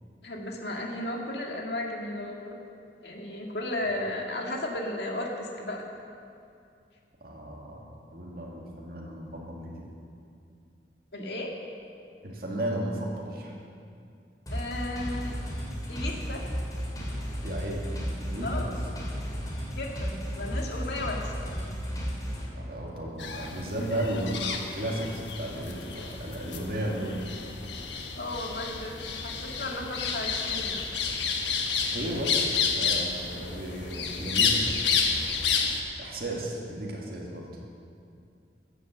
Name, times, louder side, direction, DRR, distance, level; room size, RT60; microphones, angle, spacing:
voice 1, 0.2-2.6 3.0-5.8 11.1-11.5 14.5-15.3 15.9-16.4 18.4-18.7 19.7-21.3 28.1-30.8, left 1 dB, 70° left, 0 dB, 2.0 m, -34 dB
voice 2, 7.2-9.9 12.2-13.5 17.4-17.9 18.2-18.7 22.5-27.2 31.8-35.2 36.0-37.5, right 1 dB, 55° right, -3 dB, 2.2 m, -34 dB
sound 1, 14.5-22.5, equal, 20° left, 2.7 m, -33 dB
sound 2, 23.2-35.8, left 5 dB, 85° left, 1.3 m, -30 dB
15.0 x 7.8 x 7.6 m, 2.4 s
head